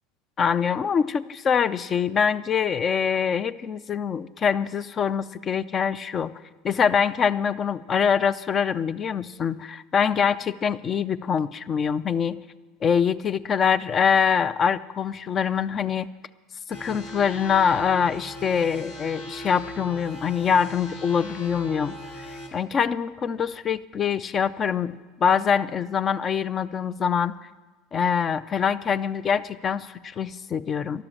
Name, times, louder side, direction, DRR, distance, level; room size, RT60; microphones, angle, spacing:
voice 1, 0.4-6.3 6.6-12.4 12.8-16.1 16.7-21.9 22.3-27.3 27.9-31.0, left 7 dB, 35° left, 16 dB, 0.5 m, -24 dB
sound 1, 16.7-22.5, equal, 80° left, 2.8 m, -38 dB
13.0 x 11.0 x 7.4 m, 1.3 s
hypercardioid pair, 85°, 0 cm